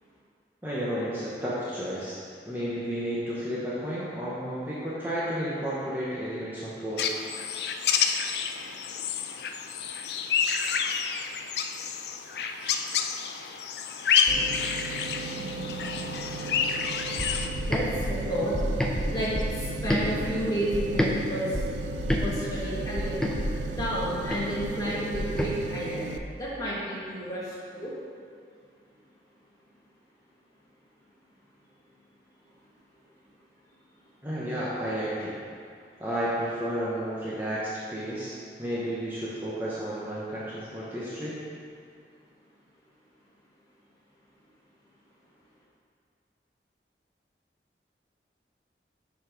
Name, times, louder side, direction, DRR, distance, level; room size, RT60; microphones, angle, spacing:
voice 1, 0.6-2.2 2.4-7.2 34.2-35.4 36.0-41.3, equal, 10° right, -8 dB, 0.8 m, -32 dB
sound 1, 7.0-17.5, left 7 dB, 70° left, 0.4 m, -29 dB
sound 2, 14.3-26.2, right 4 dB, 85° right, 0.4 m, -37 dB
voice 2, 15.4-16.2 17.6-21.5 22.2-23.3 23.8-27.9, equal, 20° left, -7 dB, 1.4 m, -32 dB
sound 3, 17.2-21.1 21.5-25.5, equal, 5° left, 0.4 m, -30 dB
6.9 x 4.1 x 5.0 m, 2.2 s
head